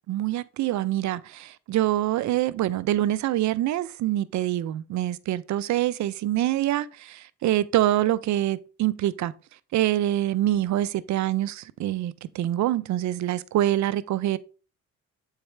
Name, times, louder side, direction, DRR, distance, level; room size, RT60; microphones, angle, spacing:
voice 1, 0.1-9.3 9.7-14.4, right 13 dB, 70° right, 0.5 m, -25 dB
8.0 x 4.7 x 3.3 m
cardioid pair, 90°, 30 cm